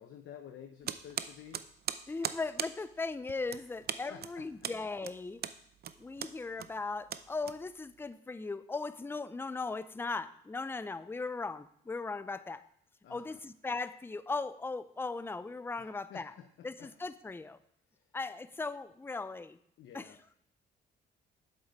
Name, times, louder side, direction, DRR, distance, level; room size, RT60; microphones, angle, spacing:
voice 1, 0.0-1.6 4.1-4.7 13.0-13.4 15.8-15.9 16.1-16.9 19.8-20.2, left 9 dB, 75° left, 4 dB, 0.9 m, -51 dB
sound 1, 0.8-8.0, right 9 dB, 50° right, 0.6 m, -40 dB
voice 2, 2.1-5.4 6.0-12.6 13.1-16.3 16.6-17.6 18.1-19.6 19.9-20.1, left 3 dB, 10° left, 13 dB, 0.5 m, -38 dB
8.1 x 7.5 x 5.3 m, 0.69 s
cardioid pair, 90°, 20 cm